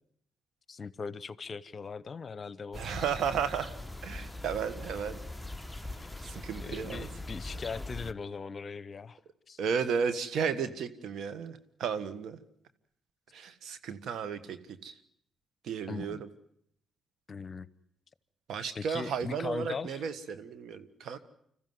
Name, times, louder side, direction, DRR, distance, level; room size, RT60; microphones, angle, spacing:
voice 1, 0.7-2.8 6.0-6.3 6.6-9.2 9.5-9.6 15.9-16.2 17.3-17.7 18.7-20.0, left 5 dB, 45° left, 18 dB, 0.9 m, -40 dB
sound 1, 2.7-8.1, left 2 dB, 5° left, 1.1 m, -41 dB
voice 2, 2.7-3.7 4.0-5.2 5.8-5.9 6.2-7.1 7.5-7.6 9.6-12.4 13.3-15.0 15.6-16.3 18.5-21.2, right 6 dB, 75° right, 12 dB, 1.5 m, -34 dB
26.0 x 14.5 x 9.5 m, 0.72 s
supercardioid pair, 60°, 0 cm